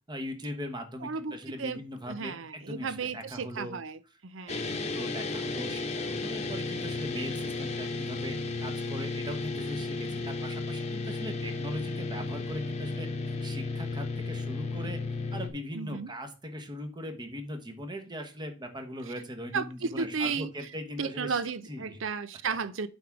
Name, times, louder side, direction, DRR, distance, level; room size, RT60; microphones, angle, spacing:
voice 1, 0.1-3.7 4.5-15.0 15.3-21.4 21.7-22.0, equal, 25° right, 1.2 m, -40 dB
voice 2, 1.0-4.8 15.7-16.1 19.5-20.7 21.0-22.9, right 5 dB, 75° right, 0.6 m, -34 dB
sound 1, 4.5-15.5, left 3 dB, 35° left, 1.0 m, -34 dB
8.4 x 3.6 x 6.0 m
head